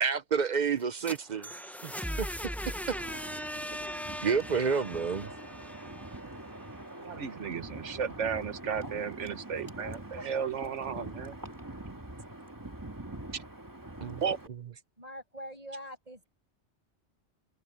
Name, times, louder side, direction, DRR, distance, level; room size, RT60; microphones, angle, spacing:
voice 1, 0.0-1.5 1.8-2.3 2.8-2.9 4.2-5.3 10.2-10.3 14.0-14.2, right 6 dB, 50° right, 0.6 m, -29 dB
sound 1, 0.8-6.7, equal, ahead, 0.6 m, -39 dB
Wind, 2.7-14.5, right 1 dB, 15° right, 1.9 m, -44 dB
voice 2, 7.0-11.4 14.2-14.4, right 7 dB, 85° right, 1.4 m, -34 dB
voice 3, 15.0-16.3, equal, 30° right, 8.2 m, -44 dB
omnidirectional pair, 1.2 m